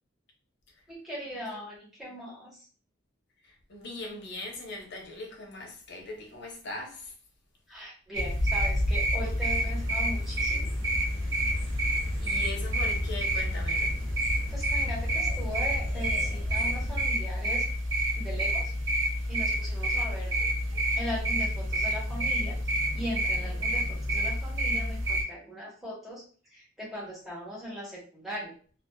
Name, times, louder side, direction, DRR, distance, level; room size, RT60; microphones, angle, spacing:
voice 1, 0.9-2.6 7.7-10.7 14.5-17.6 18.2-18.7 19.3-20.4 20.9-22.6 22.9-26.2 26.5-28.5, equal, ahead, 1.1 m, -39 dB
voice 2, 3.7-7.1 12.2-13.9, left 2 dB, 60° left, 0.7 m, -40 dB
sound 1, 8.1-25.2, right 1 dB, 85° right, 0.7 m, -28 dB
sound 2, 9.1-17.1, left 1 dB, 35° left, 1.0 m, -37 dB
2.4 x 2.4 x 2.2 m
head